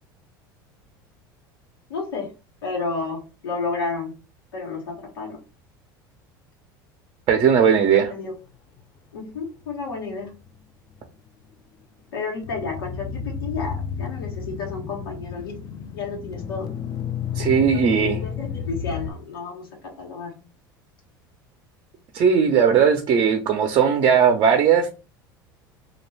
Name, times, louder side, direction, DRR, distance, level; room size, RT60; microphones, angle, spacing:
voice 1, 1.9-2.3 2.6-4.2 4.5-5.4 8.1-8.3 9.1-10.3 12.1-15.6 15.9-16.7 17.7-20.4, left 4 dB, 90° left, -1 dB, 1.0 m, -31 dB
voice 2, 7.3-8.1 17.3-18.2 22.1-24.9, right 7 dB, 45° right, 4 dB, 0.6 m, -18 dB
sound 1, 9.3-10.5 12.4-19.1, left 7 dB, 35° left, 0.4 m, -32 dB
2.4 x 2.2 x 3.2 m, 0.32 s
hypercardioid pair, 85°, 12 cm